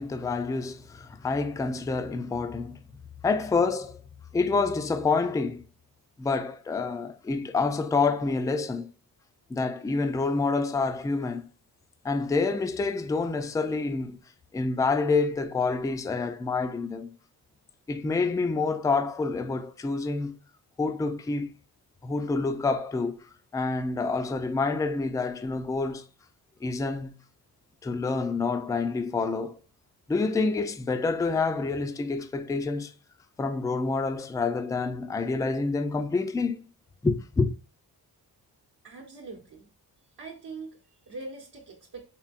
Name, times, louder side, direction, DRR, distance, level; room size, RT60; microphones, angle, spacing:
voice 1, 0.0-2.8 3.2-4.0 4.3-5.6 6.2-8.9 9.5-11.4 12.0-14.2 14.5-17.1 17.9-20.4 20.8-21.5 22.0-23.2 23.5-26.0 26.6-27.2 27.8-29.6 30.1-32.9 33.4-36.6 37.0-37.5, left 4 dB, 10° left, 0.3 m, -27 dB
voice 2, 38.8-39.7 40.2-42.1, right 3 dB, 65° right, 0.9 m, -42 dB
4.4 x 3.3 x 2.4 m
cardioid pair, 85°, 39 cm